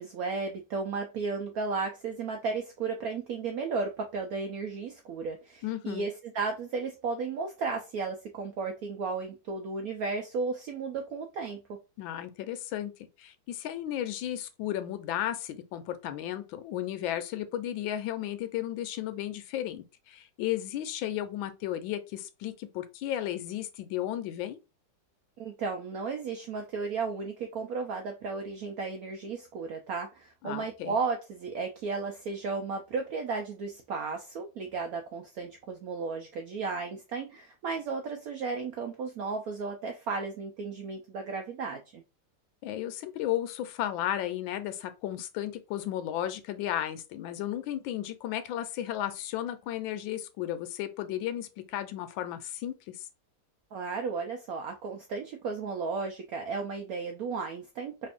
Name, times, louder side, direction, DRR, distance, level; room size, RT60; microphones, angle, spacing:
voice 1, 0.0-11.8 25.4-42.0 53.7-58.1, right 4 dB, 80° right, 0.8 m, -34 dB
voice 2, 5.6-6.1 12.0-12.9 13.2-24.6 30.4-30.9 42.6-53.1, left 12 dB, 85° left, 1.3 m, -34 dB
3.3 x 2.5 x 3.4 m
omnidirectional pair, 2.1 m